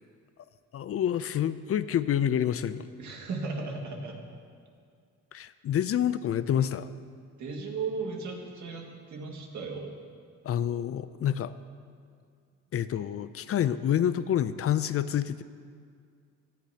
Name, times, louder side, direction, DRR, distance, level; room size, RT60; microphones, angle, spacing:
voice 1, 0.7-2.9 5.3-6.9 10.4-11.5 12.7-15.4, left 10 dB, 50° left, 14 dB, 0.5 m, -28 dB
voice 2, 3.0-4.2 7.4-10.0, right 4 dB, 70° right, 1 dB, 2.0 m, -36 dB
17.0 x 11.5 x 2.9 m, 2.2 s
cardioid pair, 90°, 30 cm